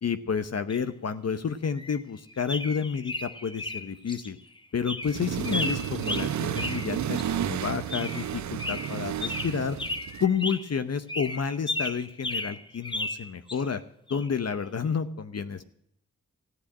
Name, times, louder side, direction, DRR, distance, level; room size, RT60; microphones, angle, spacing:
voice 1, 0.0-4.4 4.7-9.8 10.2-13.8 14.1-15.7, left 6 dB, 50° left, 10 dB, 0.9 m, -30 dB
sound 1, 0.7-0.8 1.8-2.0 2.3-4.3 4.6-4.7 4.9-7.3 7.9-8.3 8.6-10.7 11.1-13.8 14.1-14.3, left 2 dB, 15° left, 1.0 m, -34 dB
Accelerating revving vroom, 5.0-10.3, right 10 dB, 65° right, 0.5 m, -32 dB
14.5 x 8.4 x 8.5 m, 0.70 s
wide cardioid pair, 80°, 31 cm